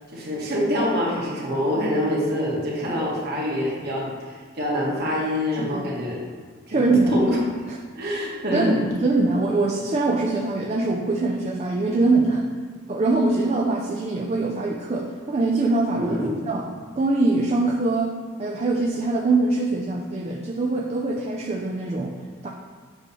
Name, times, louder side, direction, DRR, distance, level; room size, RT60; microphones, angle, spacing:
voice 1, 0.1-6.2 6.7-6.9 7.1-7.4 7.9-8.9 15.9-16.4, left 1 dB, 50° right, -5 dB, 1.6 m, -25 dB
voice 2, 6.7-7.2 7.7-7.8 8.5-12.5 12.9-16.2 16.4-16.7 17.0-22.1 22.4-22.5, right 2 dB, 30° right, -1 dB, 0.4 m, -23 dB
7.7 x 3.1 x 5.5 m, 1.5 s
head